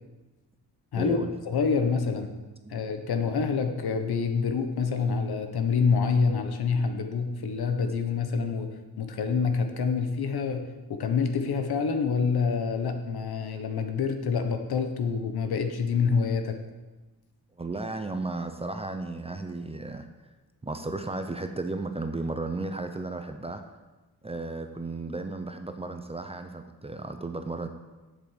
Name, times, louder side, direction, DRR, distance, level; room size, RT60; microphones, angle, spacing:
voice 1, 0.9-1.3 2.6-2.8 17.6-20.1 20.6-23.6 24.2-27.7, right 2 dB, 15° right, 7 dB, 0.6 m, -34 dB
voice 2, 1.5-2.3 2.7-16.6, left 5 dB, 70° left, 6 dB, 1.3 m, -27 dB
8.3 x 7.4 x 7.5 m, 1.2 s
wide cardioid pair, 145°, 39 cm